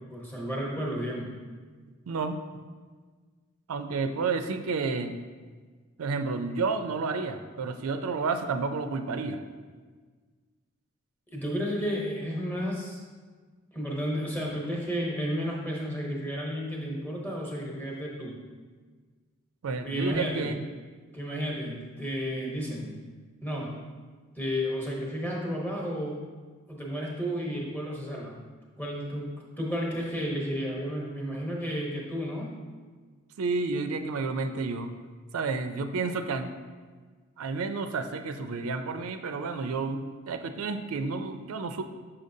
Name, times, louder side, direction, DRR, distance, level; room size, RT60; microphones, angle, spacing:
voice 1, 0.0-1.3 11.3-13.0 13.7-18.4 19.8-20.5 21.1-22.9 23.4-23.7 24.3-26.2 26.7-28.4 28.8-29.3 29.6-32.6, equal, 10° left, -3 dB, 0.9 m, -32 dB
voice 2, 2.1-2.4 3.7-5.2 6.0-9.4 19.6-20.6 33.4-34.9 35.3-36.6 37.4-41.8, right 4 dB, 90° right, 8 dB, 0.4 m, -30 dB
6.5 x 5.6 x 2.7 m, 1.5 s
head